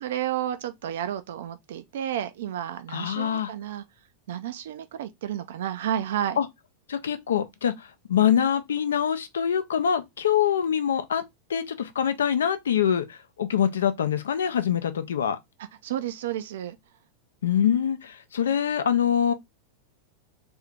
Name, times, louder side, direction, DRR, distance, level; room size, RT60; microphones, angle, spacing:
voice 1, 0.0-3.8 4.3-6.4 15.8-16.8, right 10 dB, 55° right, 0.4 m, -31 dB
voice 2, 2.9-3.5 6.4-6.5 6.9-11.2 11.5-15.4 17.4-19.3, left 8 dB, 65° left, 0.5 m, -24 dB
3.5 x 2.7 x 3.4 m
figure-of-eight pair, 90°, 0 cm